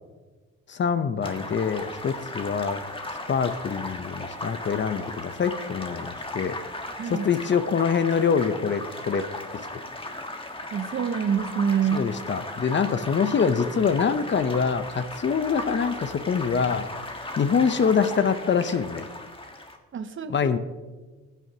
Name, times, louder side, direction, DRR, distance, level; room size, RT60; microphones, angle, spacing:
voice 1, 0.7-2.8 3.3-6.6 7.0-9.3 11.9-16.9 17.4-19.1 20.3-20.6, left 6 dB, 40° left, 12 dB, 0.7 m, -25 dB
sound 1, 1.2-19.8, left 2 dB, 15° left, 1.4 m, -36 dB
voice 2, 10.7-12.0 19.9-20.5, right 7 dB, 40° right, 10 dB, 0.8 m, -26 dB
17.0 x 9.2 x 2.8 m, 1.3 s
cardioid pair, 90°, 30 cm